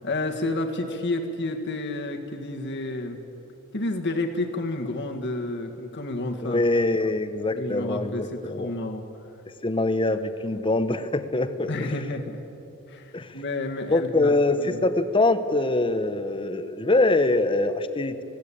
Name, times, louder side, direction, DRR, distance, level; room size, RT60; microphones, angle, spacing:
voice 1, 0.0-3.2 3.7-6.6 7.5-9.0 11.7-12.4 12.9-14.3 14.6-14.8, left 2 dB, 55° left, 3 dB, 1.7 m, -30 dB
voice 2, 6.4-8.7 9.6-11.9 13.1-13.4 13.9-18.2, left 2 dB, 25° left, 11 dB, 0.9 m, -24 dB
20.0 x 16.0 x 8.5 m, 2.9 s
head